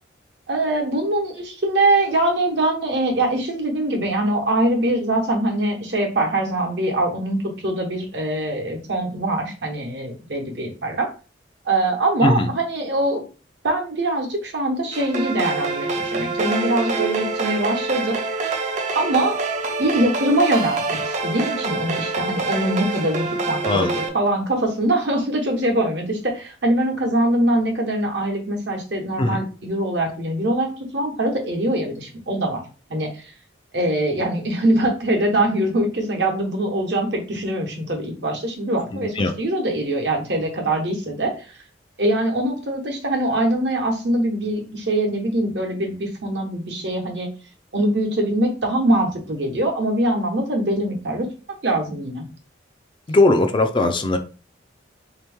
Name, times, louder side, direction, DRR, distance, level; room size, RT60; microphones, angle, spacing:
voice 1, 0.5-11.1 11.6-13.2 13.6-18.1 18.9-19.4 19.8-32.6 32.9-33.3 33.7-41.5 42.0-47.3 47.7-51.3 51.6-52.3, right 1 dB, 60° right, 2 dB, 1.1 m, -23 dB
sound 1, 14.9-24.1, right 3 dB, 40° right, 0.5 m, -26 dB
voice 2, 23.6-24.0 29.2-29.4 38.9-39.3 53.1-54.2, left 2 dB, 25° left, 6 dB, 0.3 m, -19 dB
3.4 x 2.9 x 3.5 m, 0.35 s
head